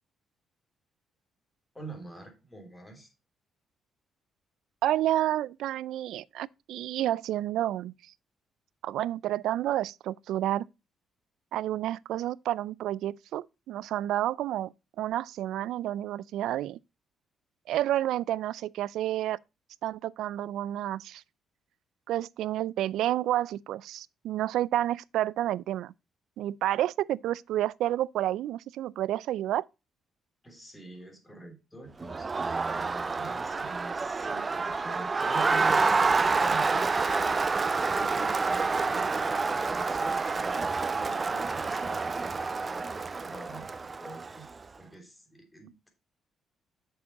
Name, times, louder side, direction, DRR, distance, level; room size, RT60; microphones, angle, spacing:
voice 1, 1.7-3.1 30.4-45.9, right 2 dB, 10° left, 3.4 m, -45 dB
voice 2, 4.8-7.9 8.8-10.7 11.5-16.8 17.7-19.4 19.8-21.2 22.1-25.9 26.4-29.6, right 13 dB, 80° right, 0.3 m, -30 dB
Crowd, 32.0-44.5, right 4 dB, 30° right, 0.6 m, -28 dB
7.3 x 6.5 x 4.1 m
cardioid pair, 90°, 0 cm